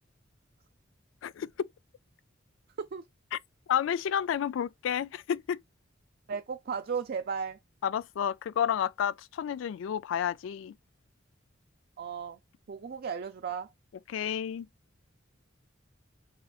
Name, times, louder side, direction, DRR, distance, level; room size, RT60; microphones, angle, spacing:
voice 1, 1.2-1.7 3.3-3.4 3.7-5.6 7.8-10.7 14.1-14.7, left 9 dB, 80° left, 0.3 m, -30 dB
voice 2, 6.3-7.6 12.0-12.4 12.7-13.7, right 6 dB, 55° right, 0.4 m, -35 dB
4.2 x 3.9 x 2.3 m
head